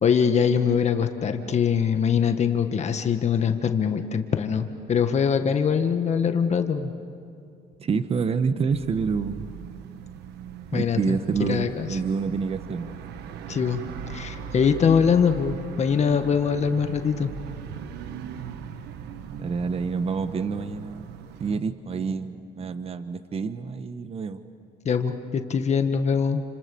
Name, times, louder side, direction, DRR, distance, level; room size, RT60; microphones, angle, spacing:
voice 1, 0.0-6.9 10.7-12.0 13.5-13.8 14.1-17.3 24.8-26.4, left 6 dB, 40° left, 7 dB, 1.6 m, -23 dB
voice 2, 7.8-9.5 10.7-13.0 19.4-21.1 21.4-24.4, right 5 dB, 35° right, 11 dB, 1.2 m, -28 dB
sound 1, 8.7-21.6, right 8 dB, 80° right, 1.3 m, -40 dB
30.0 x 27.0 x 7.0 m, 2.6 s
cardioid pair, 110°, 17 cm